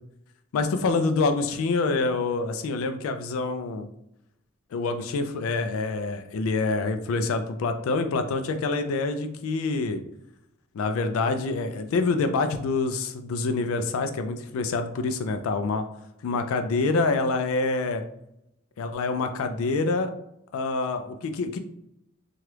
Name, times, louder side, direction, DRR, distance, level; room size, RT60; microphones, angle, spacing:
voice 1, 0.5-3.9 4.7-10.0 10.7-15.9 16.2-18.0 18.8-20.1 20.5-21.6, left 3 dB, 90° left, 7 dB, 0.3 m, -26 dB
3.2 x 2.3 x 2.9 m, 0.80 s
head